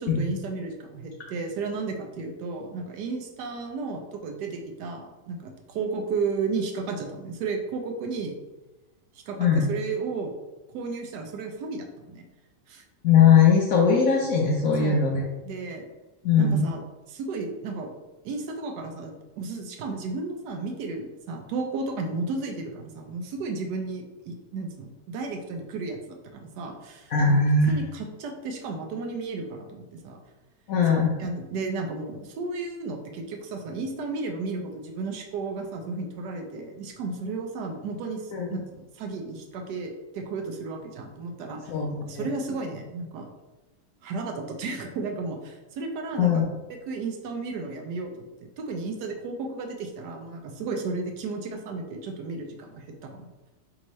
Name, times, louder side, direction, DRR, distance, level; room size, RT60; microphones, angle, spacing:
voice 1, 0.0-8.3 9.3-10.3 10.7-12.2 12.7-12.8 14.8-15.0 15.4-15.9 16.4-17.9 18.2-27.4 27.7-30.2 30.9-41.7 42.1-43.3 44.0-46.4 46.7-53.3, right 4 dB, 75° right, 4 dB, 1.1 m, -33 dB
voice 2, 13.0-15.2 16.2-16.7 27.1-27.8 30.7-31.1 38.3-38.5 41.7-42.3 46.2-46.5, left 6 dB, 70° left, -1 dB, 0.8 m, -20 dB
3.5 x 3.1 x 4.0 m, 1.1 s
omnidirectional pair, 1.9 m